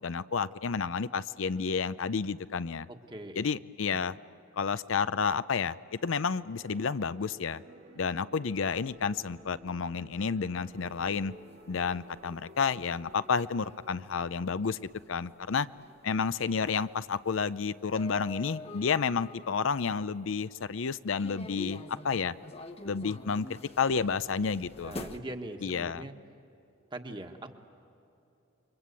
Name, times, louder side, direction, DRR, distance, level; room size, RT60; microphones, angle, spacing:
voice 1, 0.0-2.9 3.4-4.2 4.6-7.6 8.0-11.3 11.7-14.8 15.1-15.7 16.0-22.3 22.8-23.5 23.8-24.9 25.6-26.0, left 5 dB, 70° left, 14 dB, 0.5 m, -30 dB
voice 2, 2.9-3.4 24.8-26.1 26.9-27.5, right 1 dB, 25° right, 5 dB, 1.5 m, -41 dB
sound 1, 6.2-14.5, right 1 dB, 55° right, 2.2 m, -54 dB
sound 2, 10.6-20.5 21.2-25.2, left 2 dB, 30° left, 1.1 m, -47 dB
30.0 x 23.5 x 8.3 m, 2.8 s
head